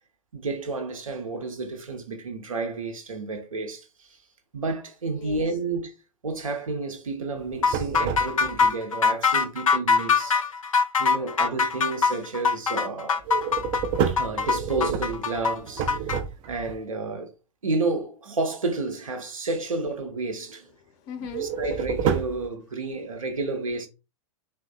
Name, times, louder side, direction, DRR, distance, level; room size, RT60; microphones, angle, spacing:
voice 1, 0.3-4.2 4.5-5.9 6.2-10.5 11.0-13.2 14.1-15.9 16.5-17.3 17.6-20.7 21.2-23.9, right 3 dB, 80° right, 0.8 m, -31 dB
voice 2, 5.1-5.4 10.2-10.4 11.1-11.4 13.3-14.1 20.8-21.6, left 7 dB, 40° left, 0.8 m, -42 dB
sound 1, 7.4-8.7 13.2-16.8 21.3-22.5, right 7 dB, 30° right, 0.4 m, -29 dB
sound 2, 7.6-16.2, left 5 dB, 80° left, 0.4 m, -23 dB
3.6 x 2.3 x 2.3 m
figure-of-eight pair, 100°, 17 cm